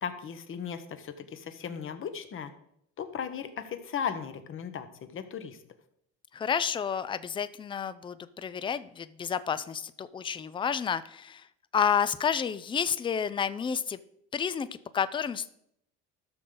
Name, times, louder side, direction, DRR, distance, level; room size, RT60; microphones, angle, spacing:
voice 1, 0.0-2.5 3.0-4.9 5.1-5.6, left 7 dB, 40° left, 10 dB, 1.1 m, -36 dB
voice 2, 6.3-11.5 11.7-14.0 14.3-14.7 14.9-15.5, left 7 dB, 15° left, 15 dB, 0.4 m, -30 dB
13.0 x 6.5 x 3.9 m, 0.74 s
cardioid pair, 110°, 32 cm